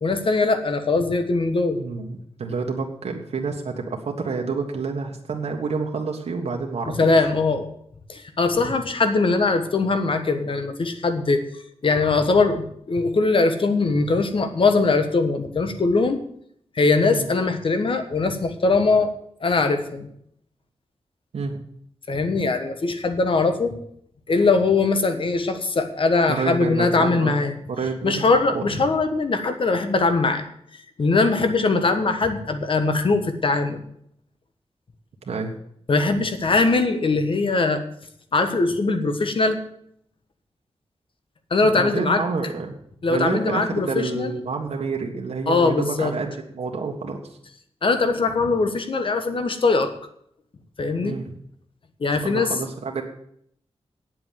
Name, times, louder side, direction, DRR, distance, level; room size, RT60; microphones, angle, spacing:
voice 1, 0.0-1.8 6.9-7.7 8.1-11.4 11.8-16.2 16.7-19.1 19.4-20.1 22.1-23.8 24.3-27.5 28.0-30.4 31.0-33.8 35.9-37.8 38.3-39.6 41.5-42.2 43.0-44.4 45.5-46.1 47.8-49.9 50.8-51.2 52.0-52.5, left 3 dB, 55° left, 8 dB, 1.4 m, -21 dB
voice 2, 1.8-7.1 8.5-8.7 17.1-17.3 21.3-21.6 26.3-27.4 27.7-28.6 35.2-35.5 41.6-42.8 43.1-47.2 51.0-51.3 52.2-53.0, right 4 dB, 85° right, 1 dB, 1.6 m, -28 dB
9.0 x 7.8 x 9.2 m, 0.69 s
wide cardioid pair, 135°, 11 cm